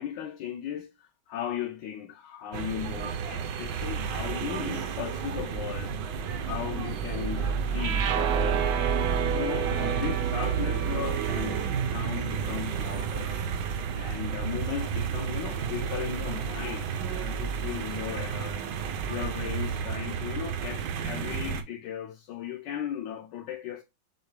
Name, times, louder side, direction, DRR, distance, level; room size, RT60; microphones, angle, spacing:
voice 1, 0.0-5.9 6.4-8.7 9.3-13.4 13.9-18.7 19.1-23.8, left 10 dB, 75° left, 1.1 m, -37 dB
sound 1, 2.5-21.6, right 7 dB, 70° right, 1.1 m, -31 dB
sound 2, 7.8-14.1, right 8 dB, 90° right, 0.7 m, -33 dB
6.2 x 2.2 x 3.2 m
omnidirectional pair, 2.2 m